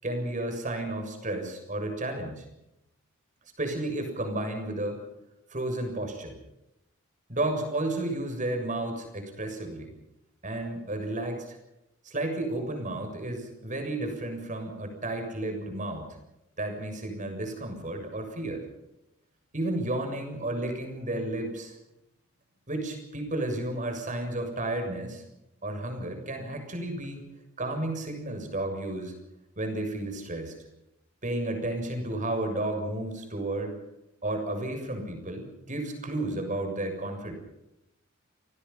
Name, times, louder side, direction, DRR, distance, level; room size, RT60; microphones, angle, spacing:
voice 1, 0.0-2.5 3.6-5.0 5.5-6.4 7.3-9.9 10.4-11.6 12.1-16.1 16.6-18.6 19.5-21.8 22.7-25.2 25.6-27.2 27.6-29.1 29.6-30.5 31.2-33.8 34.2-37.3, right 1 dB, 40° right, 5 dB, 7.0 m, -32 dB
29.5 x 19.5 x 5.8 m, 0.89 s
head